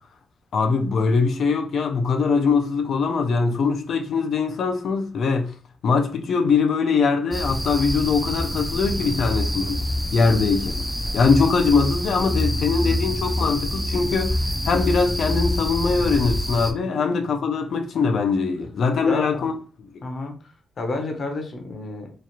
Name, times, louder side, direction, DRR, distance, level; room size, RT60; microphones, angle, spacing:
voice 1, 0.5-5.5 5.8-9.8 10.1-10.9 11.1-19.5, left 4 dB, 65° left, 0.6 m, -22 dB
sound 1, 7.3-16.7, left 1 dB, ahead, 0.5 m, -26 dB
voice 2, 19.0-19.5 20.0-22.1, left 2 dB, 45° left, 0.9 m, -31 dB
3.1 x 2.4 x 4.2 m
wide cardioid pair, 140°, 0 cm